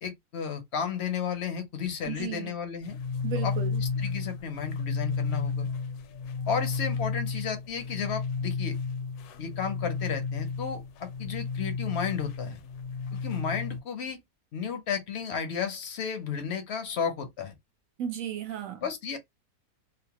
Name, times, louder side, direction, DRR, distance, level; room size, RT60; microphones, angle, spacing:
voice 1, 0.0-3.0 3.4-3.5 4.0-5.7 6.5-8.7 9.4-12.6 13.2-14.2 14.5-17.5 18.8-19.2, left 7 dB, 60° left, 0.7 m, -33 dB
voice 2, 2.0-2.6 3.2-3.8 18.0-18.9, right 9 dB, 65° right, 1.0 m, -35 dB
sound 1, 2.8-13.8, left 5 dB, 75° left, 1.0 m, -32 dB
2.7 x 2.0 x 2.8 m
omnidirectional pair, 1.7 m